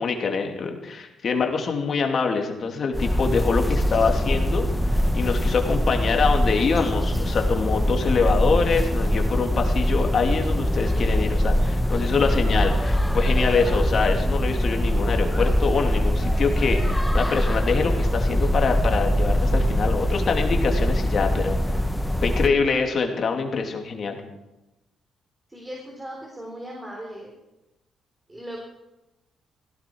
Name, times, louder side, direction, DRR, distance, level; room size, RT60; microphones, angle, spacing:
voice 1, 0.0-21.6 22.2-24.2, left 5 dB, 50° left, 3 dB, 2.7 m, -25 dB
sound 1, 2.9-22.5, equal, 5° left, 1.1 m, -23 dB
voice 2, 25.5-27.3 28.3-28.6, equal, 15° right, -1 dB, 4.0 m, -37 dB
17.0 x 16.0 x 4.7 m, 0.99 s
cardioid pair, 90°, 0 cm